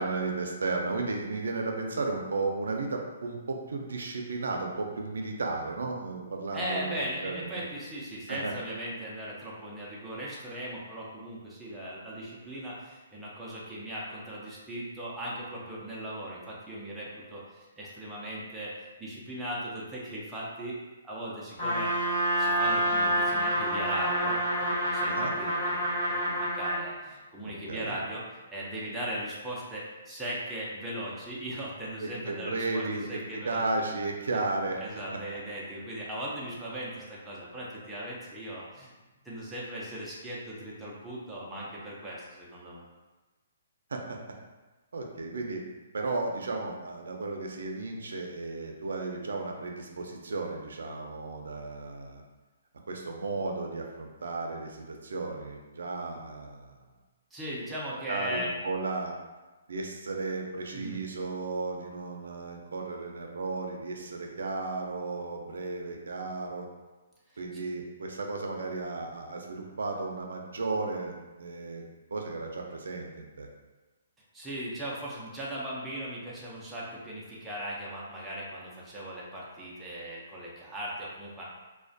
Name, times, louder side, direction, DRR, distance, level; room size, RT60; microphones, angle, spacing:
voice 1, 0.0-7.6 8.3-8.5 25.1-25.3 27.7-27.9 32.0-33.2 33.4-34.8 43.9-44.2 44.9-45.6 45.9-52.2 52.9-56.7 58.1-59.1 59.7-66.7 67.4-71.1 71.4-71.8 72.1-73.5, right 3 dB, 85° right, 2 dB, 0.4 m, -34 dB
voice 2, 6.5-18.7 19.0-20.8 21.0-21.9 22.4-28.2 28.5-33.6 34.3-34.4 34.8-38.9 39.2-42.8 57.3-58.5 60.7-61.0 67.3-67.4 74.3-81.4, right 1 dB, 5° right, -7 dB, 0.4 m, -38 dB
Trumpet, 21.6-26.8, equal, 35° left, 1.0 m, -28 dB
2.3 x 2.1 x 2.5 m, 1.2 s
hypercardioid pair, 165°, 0 cm